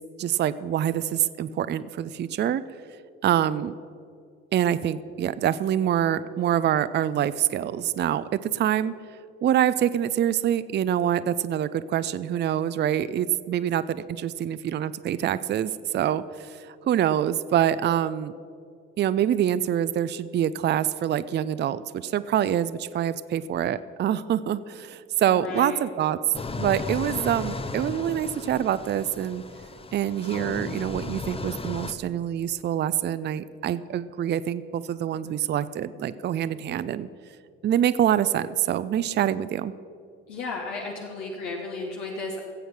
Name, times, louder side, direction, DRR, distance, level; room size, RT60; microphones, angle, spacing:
voice 1, 0.2-2.6 3.2-3.7 4.5-8.9 9.4-18.3 19.0-26.2 26.6-29.4 29.9-37.1 37.6-39.7, right 10 dB, 30° right, 15 dB, 0.5 m, -25 dB
voice 2, 25.3-25.8 40.3-42.4, left 3 dB, 70° left, 0 dB, 1.4 m, -33 dB
sound 1, 26.3-31.9, left 3 dB, 15° left, 0.8 m, -35 dB
16.0 x 7.9 x 6.0 m, 2.3 s
figure-of-eight pair, 55°, 36 cm